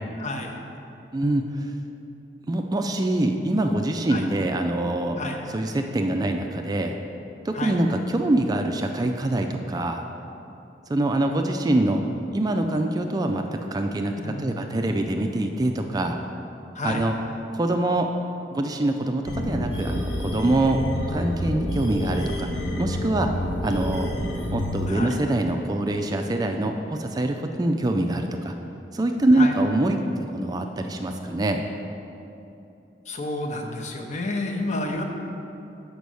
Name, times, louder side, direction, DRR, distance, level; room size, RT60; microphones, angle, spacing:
voice 1, 0.2-0.6 4.1-4.3 5.2-5.4 7.5-7.8 14.1-14.9 16.7-17.1 24.9-25.2 29.3-29.6 33.1-35.0, left 2 dB, 40° left, 2 dB, 0.8 m, -30 dB
voice 2, 1.1-1.7 2.5-5.2 5.5-6.9 7.4-10.0 10.9-12.0 12.3-16.2 16.8-17.1 17.5-18.1 18.5-20.8 21.1-22.5 22.8-23.3 23.6-24.1 24.5-28.5 28.9-31.6, right 1 dB, 20° right, 4 dB, 0.3 m, -24 dB
sound 1, 19.2-24.9, left 1 dB, 80° left, 1.0 m, -29 dB
6.8 x 5.1 x 6.2 m, 2.8 s
head